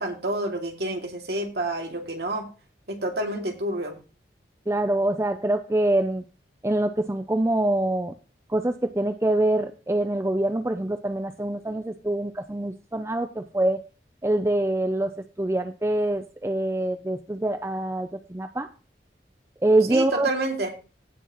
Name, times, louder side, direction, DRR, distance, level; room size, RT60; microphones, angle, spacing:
voice 1, 0.0-2.5 2.9-3.9 19.9-20.7, right 1 dB, 65° right, 2 dB, 2.4 m, -29 dB
voice 2, 4.7-6.2 6.6-8.1 8.5-13.8 14.2-15.1 15.4-18.7 19.6-20.3, right 1 dB, 15° right, 9 dB, 0.5 m, -25 dB
16.5 x 6.0 x 3.0 m, 0.33 s
head